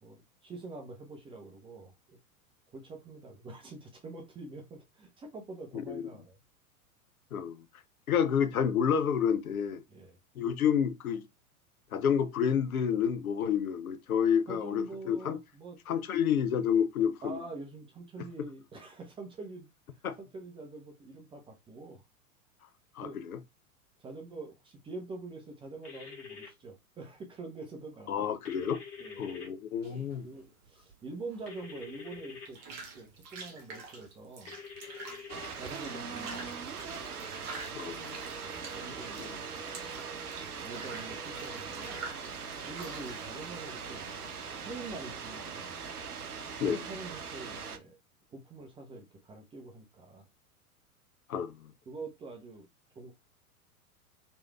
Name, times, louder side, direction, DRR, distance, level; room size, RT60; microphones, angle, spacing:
voice 1, 0.0-2.2 2.7-6.4 9.9-10.2 14.5-15.8 17.2-19.7 20.2-22.0 23.0-23.2 24.0-28.3 29.0-29.2 30.2-32.6 33.0-34.6 35.6-36.7 38.4-39.4 40.6-42.0 42.6-44.1 44.6-45.7 46.6-48.0 48.3-50.3 51.9-52.7 53.0-53.1, right 3 dB, 10° right, 0.5 m, -45 dB
voice 2, 7.3-7.6 8.1-9.8 10.4-11.2 11.9-15.4 15.9-17.4 20.0-20.1 23.0-23.4 28.1-28.8 29.2-30.3 37.7-38.2 39.2-39.3 46.6-46.8 51.3-51.5, left 8 dB, 70° left, 0.7 m, -29 dB
sound 1, 25.8-26.5 28.4-29.5 31.5-32.5 34.5-35.5, left 6 dB, 30° left, 1.6 m, -46 dB
sound 2, 29.8-44.6, right 4 dB, 35° right, 1.1 m, -47 dB
sound 3, 35.3-47.8, right 5 dB, 85° right, 0.7 m, -41 dB
3.1 x 3.0 x 2.3 m
figure-of-eight pair, 90°, 44 cm